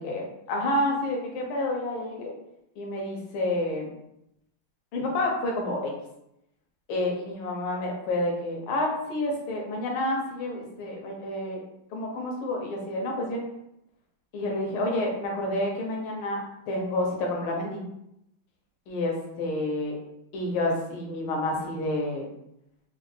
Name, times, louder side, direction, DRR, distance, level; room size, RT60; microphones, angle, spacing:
voice 1, 0.0-2.3 2.8-4.0 4.9-5.9 6.9-11.6 11.9-13.4 14.3-16.4 16.7-17.8 18.9-20.0 20.3-22.3, left 1 dB, 85° left, -1 dB, 1.6 m, -29 dB
4.2 x 2.1 x 3.1 m, 0.80 s
omnidirectional pair, 2.3 m